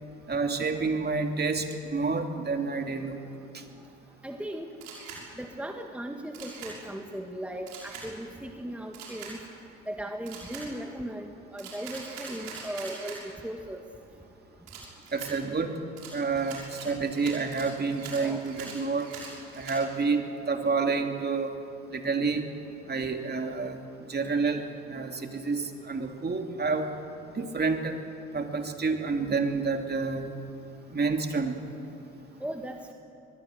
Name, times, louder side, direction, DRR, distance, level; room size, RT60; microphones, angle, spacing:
voice 1, 0.3-3.2 3.5-3.6 15.1-15.8 16.1-19.1 19.5-21.5 21.9-22.5 22.9-26.9 27.3-28.0 28.3-30.3 30.9-31.6, right 4 dB, 30° right, 4 dB, 2.9 m, -29 dB
voice 2, 4.2-4.7 5.4-9.4 9.9-13.8 18.2-18.5 20.8-21.1 32.4-32.9, right 1 dB, 5° right, 4 dB, 1.9 m, -37 dB
Camera, 4.8-5.2 6.3-6.7 7.7-8.1 8.9-9.3 10.3-10.7 11.6-13.2 14.7-15.3 16.0-19.8, right 5 dB, 80° right, 6.1 m, -43 dB
23.5 x 21.0 x 8.1 m, 2.6 s
hypercardioid pair, 60°, 34 cm